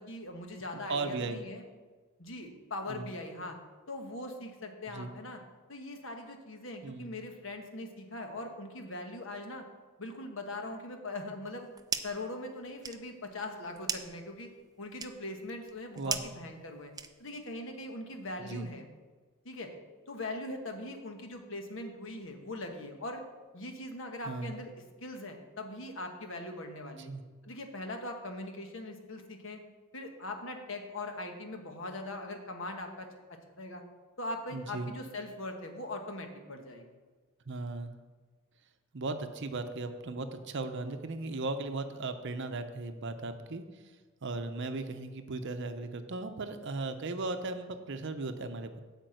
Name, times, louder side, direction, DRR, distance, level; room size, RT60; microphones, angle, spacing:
voice 1, 0.0-1.6 2.2-3.6 3.9-5.4 5.7-9.6 10.0-11.7 12.0-14.5 14.8-16.9 17.2-18.8 19.4-19.7 20.1-23.2 23.5-24.7 25.0-27.1 27.4-29.6 29.9-33.8 34.2-36.9 37.6-37.7, left 2 dB, 65° left, 4 dB, 1.3 m, -41 dB
voice 2, 0.7-1.4 2.9-3.1 4.9-5.1 6.8-7.1 16.0-16.2 18.5-18.7 24.3-24.6 27.0-27.2 34.5-34.9 37.5-37.9 38.9-43.8 44.2-48.8, right 3 dB, 60° right, 8 dB, 0.7 m, -37 dB
sound 1, 11.4-12.3 12.6-17.5, right 6 dB, 20° right, 0.4 m, -40 dB
8.8 x 5.2 x 7.8 m, 1.4 s
head